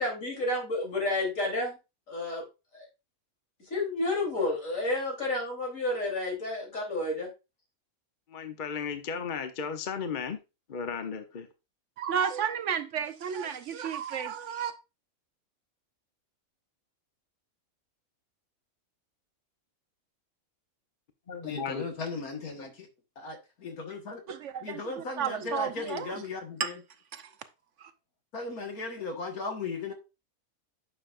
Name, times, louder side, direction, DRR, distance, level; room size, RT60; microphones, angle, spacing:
voice 1, 0.0-1.8 2.1-2.4 2.7-2.9 3.7-7.3, left 2 dB, 65° left, 3.9 m, -30 dB
voice 2, 8.3-10.4 10.7-11.5 21.3-21.8, left 6 dB, 40° left, 0.9 m, -35 dB
voice 3, 12.0-14.8 24.3-24.8 25.2-26.2 26.6-26.7 27.1-27.3 27.8-27.9, right 8 dB, 65° right, 0.9 m, -32 dB
voice 4, 21.4-22.9 23.2-24.2 24.6-26.8 28.3-29.9, left 4 dB, 85° left, 2.0 m, -37 dB
10.0 x 6.3 x 2.5 m
omnidirectional pair, 1.5 m